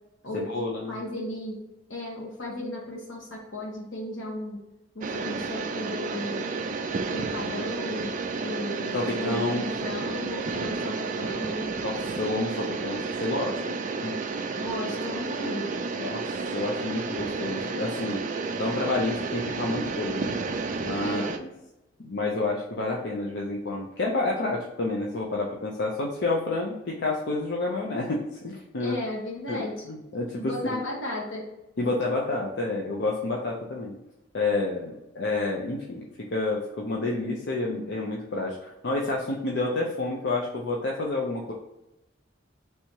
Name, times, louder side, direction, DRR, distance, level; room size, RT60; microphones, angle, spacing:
voice 1, 0.3-1.0 8.9-9.6 11.8-13.6 14.0-14.2 16.0-18.2 18.6-20.3 20.8-21.5 22.0-29.0 29.5-30.8 31.8-33.9 34.3-36.1 36.3-41.5, left 2 dB, 60° left, -2 dB, 0.6 m, -29 dB
voice 2, 0.9-1.6 1.9-4.6 4.9-6.5 7.1-11.7 14.6-15.7 21.0-21.3 28.8-29.7 30.4-31.4, left 1 dB, 80° left, -2 dB, 1.4 m, -35 dB
sound 1, 5.0-21.4, right 4 dB, 40° right, 0.4 m, -31 dB
3.3 x 2.9 x 4.5 m, 0.94 s
head